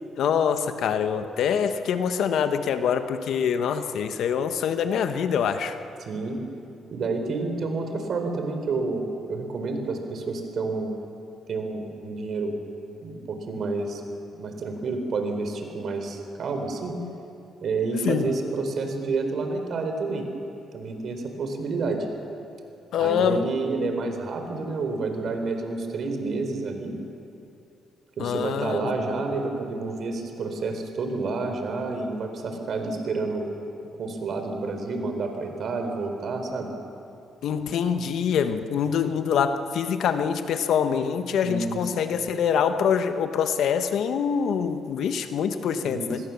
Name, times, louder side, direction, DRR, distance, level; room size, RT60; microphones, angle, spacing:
voice 1, 0.2-5.8 18.0-18.3 22.9-23.4 28.2-28.9 37.4-46.2, left 7 dB, 75° left, 8 dB, 1.3 m, -25 dB
voice 2, 6.0-6.4 6.9-10.9 11.5-12.5 13.0-14.0 14.3-17.0 17.6-20.3 20.7-22.1 23.0-27.0 28.2-33.5 34.0-36.7 41.4-41.8 45.7-46.2, right 3 dB, 60° right, 5 dB, 4.1 m, -29 dB
27.0 x 20.5 x 7.3 m, 2.7 s
cardioid pair, 90°, 0 cm